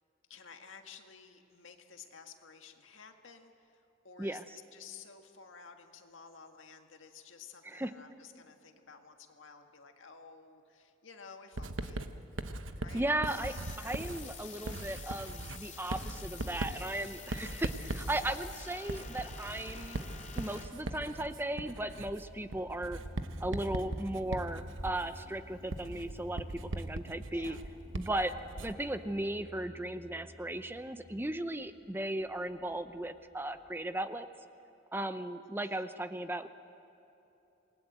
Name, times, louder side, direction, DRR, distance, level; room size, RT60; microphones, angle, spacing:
voice 1, 0.3-12.1 12.8-13.0 13.8-13.9 27.3-27.6 35.6-35.8, left 6 dB, 85° left, 5 dB, 1.8 m, -53 dB
Writing, 11.6-28.9, right 2 dB, 80° right, 1.0 m, -40 dB
voice 2, 12.9-20.1 20.3-23.0 23.4-27.6 27.9-28.3 28.6-34.3 34.9-36.5, right 1 dB, 10° right, 10 dB, 0.7 m, -36 dB
sound 1, 13.2-20.7, left 6 dB, 40° left, 3.4 m, -49 dB
Motorcycle, 16.5-33.7, equal, 50° right, 5.8 m, -52 dB
27.5 x 20.0 x 8.0 m, 2.9 s
head